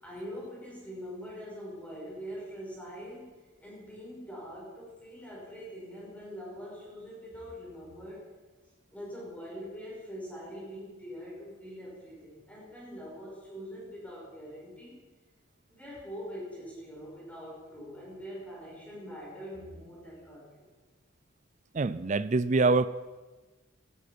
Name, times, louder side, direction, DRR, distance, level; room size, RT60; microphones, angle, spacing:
voice 1, 0.0-3.3 3.6-8.3 8.9-15.1 15.7-20.7, equal, 5° left, -5 dB, 6.1 m, -43 dB
voice 2, 21.7-22.9, right 3 dB, 35° right, 16 dB, 0.4 m, -25 dB
18.0 x 15.0 x 5.2 m, 1.3 s
head